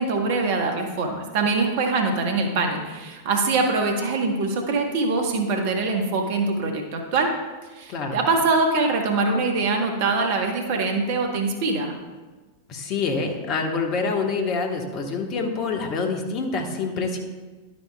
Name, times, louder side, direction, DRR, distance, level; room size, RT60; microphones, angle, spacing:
voice 1, 0.0-7.3 7.7-11.9, right 3 dB, 50° right, 3 dB, 1.1 m, -23 dB
voice 2, 12.7-17.2, left 4 dB, 40° left, 3 dB, 1.3 m, -26 dB
11.5 x 8.3 x 2.3 m, 1.3 s
figure-of-eight pair, 90°, 0 cm